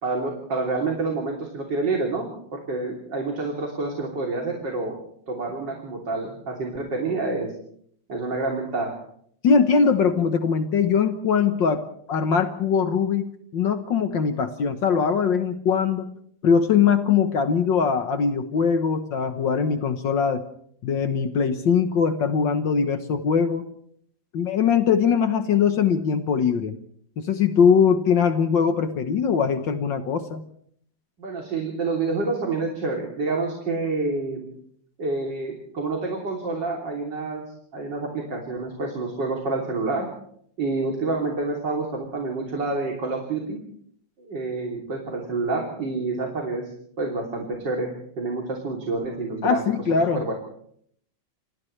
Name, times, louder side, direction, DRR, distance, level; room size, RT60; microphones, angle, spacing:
voice 1, 0.0-4.9 5.3-7.5 8.1-9.0 31.2-34.5 35.0-37.4 37.7-40.1 40.6-43.6 44.2-46.7 47.0-47.9 48.2-49.6 49.9-50.3, right 3 dB, 65° right, 0 dB, 3.9 m, -28 dB
voice 2, 9.4-13.3 13.5-16.1 16.4-20.4 20.8-23.7 24.3-26.7 27.2-30.4 49.4-50.2, left 6 dB, 70° left, 7 dB, 1.8 m, -21 dB
30.0 x 26.5 x 3.3 m, 0.66 s
omnidirectional pair, 2.1 m